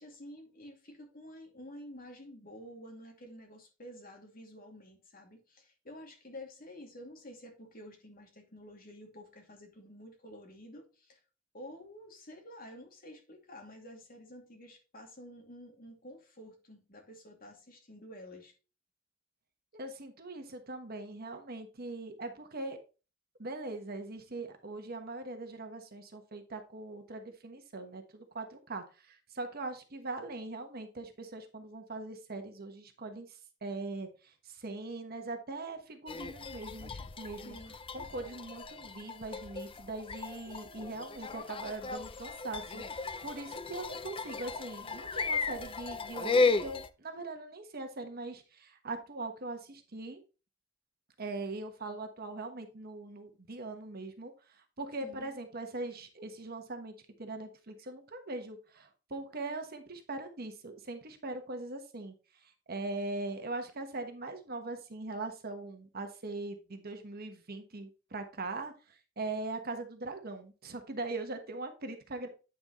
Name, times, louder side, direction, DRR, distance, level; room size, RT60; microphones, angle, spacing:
voice 1, 0.0-11.2 11.5-18.5 37.4-37.8 55.0-55.3, left 1 dB, 45° left, 2.5 m, -50 dB
voice 2, 19.7-22.8 23.4-33.3 33.6-37.6 37.9-50.2 51.2-54.3 54.8-56.9 57.2-62.1 62.4-72.3, right 2 dB, 50° right, 1.3 m, -41 dB
sound 1, 36.1-46.9, left 4 dB, 25° left, 0.5 m, -35 dB
8.9 x 6.2 x 3.1 m
head